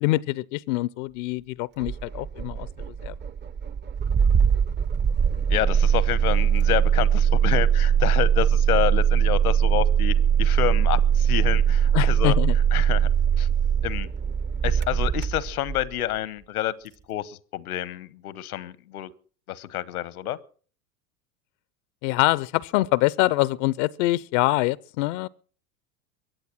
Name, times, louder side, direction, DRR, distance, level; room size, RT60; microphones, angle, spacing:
voice 1, 0.0-2.7 3.0-3.1 11.9-12.6 22.0-25.3, left 19 dB, 60° left, 0.6 m, -24 dB
Engine starting, 1.8-15.9, right 8 dB, 25° right, 0.7 m, -21 dB
voice 2, 5.5-12.4 12.7-13.1 13.4-13.5 13.8-14.1 14.6-16.7 17.1-19.1 19.5-20.4, left 13 dB, 80° left, 1.1 m, -28 dB
23.0 x 8.2 x 6.0 m
hypercardioid pair, 90°, 43 cm